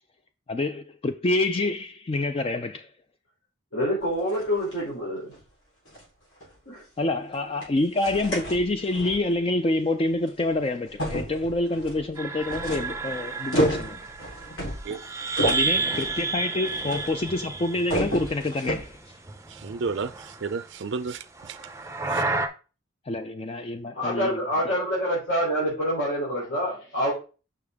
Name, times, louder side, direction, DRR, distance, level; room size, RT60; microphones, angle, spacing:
voice 1, 0.5-2.9 7.0-14.0 14.9-15.1 15.4-19.2 23.1-24.7, left 2 dB, 25° left, 0.4 m, -27 dB
voice 2, 3.7-5.3 6.6-6.8 23.9-27.1, equal, 60° left, 3.4 m, -26 dB
sound 1, 4.0-4.8 5.3-5.4 5.9-6.0 6.4-6.5 7.6-7.7 8.0-9.3 10.3-10.4 10.9-17.4 17.6-19.0, equal, 80° left, 3.7 m, -31 dB
sound 2, 12.2-18.9 19.1-20.5 21.4-22.5, right 3 dB, 15° right, 0.6 m, -31 dB
voice 3, 19.5-21.6 22.1-22.2, right 4 dB, 55° right, 0.4 m, -32 dB
6.7 x 5.7 x 3.5 m
head